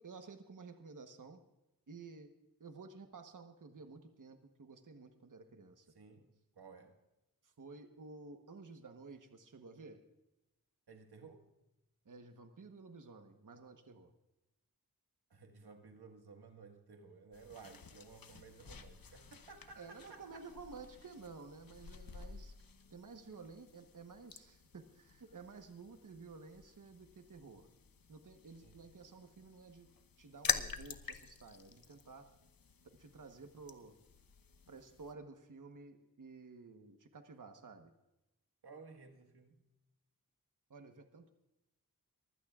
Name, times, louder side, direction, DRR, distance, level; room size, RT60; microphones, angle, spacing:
voice 1, 0.0-1.4 1.9-2.3 2.6-5.9 7.4-10.0 12.0-14.1 19.8-22.5 22.9-27.7 28.1-29.9 30.2-32.3 32.8-34.0 34.7-37.9 40.7-41.3, right 4 dB, 55° right, 6 dB, 1.2 m, -53 dB
voice 2, 5.9-7.0 10.9-11.5 15.3-20.4 28.6-28.8 38.6-39.6, right 4 dB, 90° right, 4 dB, 1.7 m, -56 dB
sound 1, 17.3-35.1, left 6 dB, 65° left, 1.0 m, -47 dB
24.0 x 16.0 x 2.4 m, 0.95 s
wide cardioid pair, 75°, 37 cm